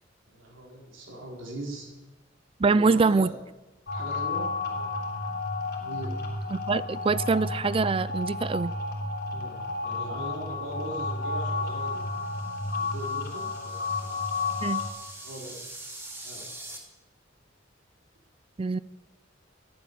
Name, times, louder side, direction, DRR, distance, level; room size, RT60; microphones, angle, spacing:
voice 1, 0.3-1.9 2.6-3.3 3.9-5.1 5.8-6.2 9.3-12.0 12.8-14.1 15.2-15.6 16.2-16.5, right 1 dB, 90° right, 4.2 m, -40 dB
voice 2, 2.6-3.3 6.5-8.7 14.6-14.8 18.6-18.8, right 4 dB, 30° right, 0.4 m, -24 dB
sound 1, 3.9-14.9, left 3 dB, 55° left, 3.5 m, -32 dB
sound 2, 11.6-16.8, right 1 dB, 15° right, 2.3 m, -45 dB
13.0 x 11.5 x 6.8 m
head